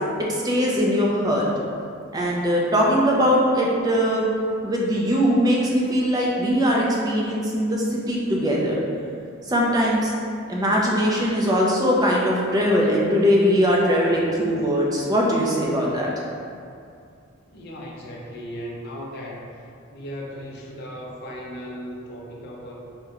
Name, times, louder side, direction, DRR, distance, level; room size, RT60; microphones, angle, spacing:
voice 1, 0.3-1.5 2.1-4.3 4.6-8.8 9.5-10.1 10.5-16.1, equal, 20° right, -4 dB, 0.4 m, -21 dB
voice 2, 17.5-19.4 19.9-22.7, equal, 50° left, -2 dB, 0.5 m, -36 dB
3.6 x 2.1 x 2.8 m, 2.4 s
head